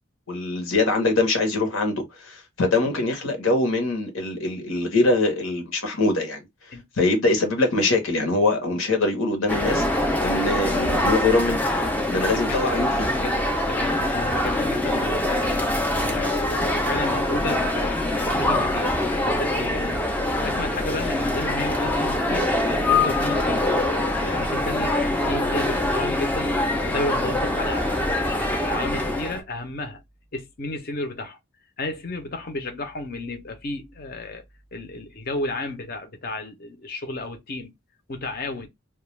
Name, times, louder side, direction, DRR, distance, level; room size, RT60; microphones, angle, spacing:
voice 1, 0.3-6.5 7.0-9.8 10.2-11.6 12.1-13.1, left 2 dB, 80° left, 1.0 m, -23 dB
sound 1, 9.5-29.4, left 1 dB, 10° left, 0.3 m, -24 dB
voice 2, 12.5-13.3 13.7-15.6 16.0-18.9 19.2-26.5 26.9-28.4 28.6-30.0 30.3-31.4 31.8-34.4 34.7-37.7 38.1-38.7, left 2 dB, 45° left, 0.6 m, -32 dB
2.3 x 2.3 x 3.1 m
head